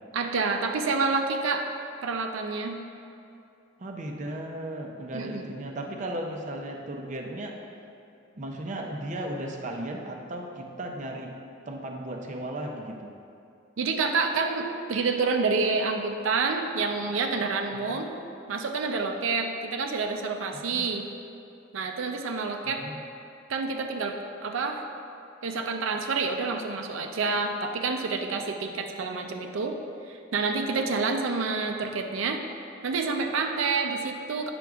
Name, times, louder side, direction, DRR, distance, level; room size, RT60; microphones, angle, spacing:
voice 1, 0.1-1.6 2.0-2.8 5.1-5.5 13.8-18.1 18.5-21.1 21.7-22.8 23.5-24.8 25.4-29.7 30.1-32.4 32.8-34.5, right 4 dB, 85° right, 3 dB, 0.5 m, -28 dB
voice 2, 3.8-7.6 8.4-11.3 11.6-13.1 17.7-18.1 20.5-20.9 22.6-23.0, right 1 dB, 40° right, 1 dB, 0.5 m, -36 dB
9.1 x 5.9 x 2.4 m, 2.7 s
head